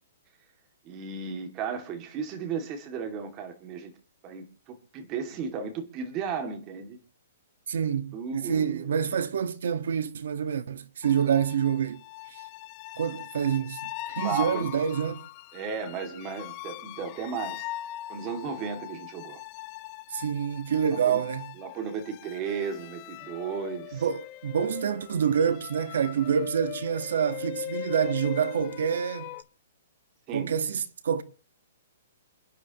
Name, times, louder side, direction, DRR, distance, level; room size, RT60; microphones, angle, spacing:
voice 1, 0.8-3.9 4.2-7.0 8.1-9.0 14.2-14.7 15.5-17.7 18.1-19.4 20.9-21.2 21.6-24.0 30.3-30.5, right 6 dB, 25° right, 2.4 m, -35 dB
voice 2, 7.7-12.0 12.3-12.4 13.0-15.2 20.1-21.5 23.9-29.3 30.3-31.2, right 7 dB, 70° right, 1.4 m, -27 dB
sound 1, 11.0-29.4, left 15 dB, 30° left, 0.7 m, -40 dB
28.5 x 10.0 x 3.0 m
hypercardioid pair, 165°, 0 cm